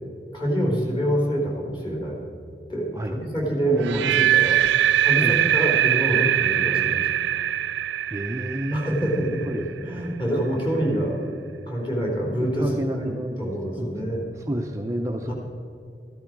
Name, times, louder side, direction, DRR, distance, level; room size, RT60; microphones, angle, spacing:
voice 1, 0.3-2.2 2.7-7.0 8.7-13.1 13.4-14.3 15.3-15.4, right 1 dB, 30° left, -2 dB, 3.8 m, -26 dB
voice 2, 3.6-4.1 5.2-5.4 7.3-7.5 8.1-9.1 9.4-10.3 12.2-13.5 13.8-13.9 14.4-15.3, right 1 dB, 20° right, 2 dB, 0.7 m, -30 dB
sound 1, 3.8-9.8, right 11 dB, 85° right, 0.3 m, -22 dB
14.5 x 13.0 x 4.7 m, 2.6 s
head